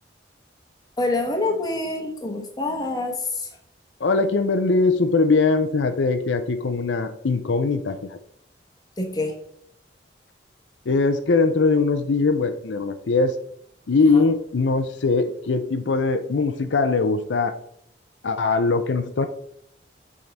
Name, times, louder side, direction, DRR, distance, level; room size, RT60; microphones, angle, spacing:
voice 1, 1.0-3.5 9.0-9.4 14.0-14.3, left 2 dB, 20° left, 2 dB, 1.1 m, -26 dB
voice 2, 4.0-8.2 10.9-13.4 13.9-17.5 18.2-19.3, left 3 dB, 85° left, 9 dB, 0.5 m, -21 dB
7.7 x 3.7 x 4.1 m, 0.70 s
head